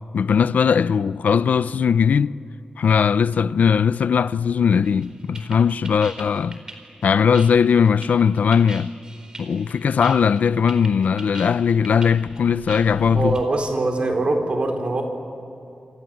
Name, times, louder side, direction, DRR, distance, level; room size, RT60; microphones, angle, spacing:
voice 1, 0.1-2.4 2.8-6.6 7.0-8.9 9.4-13.4, left 6 dB, 85° left, 0.5 m, -19 dB
sound 1, 4.8-13.4, right 2 dB, 30° right, 4.3 m, -41 dB
voice 2, 13.1-15.0, right 2 dB, 45° right, 4.2 m, -22 dB
27.5 x 26.5 x 7.8 m
wide cardioid pair, 135°, 3 cm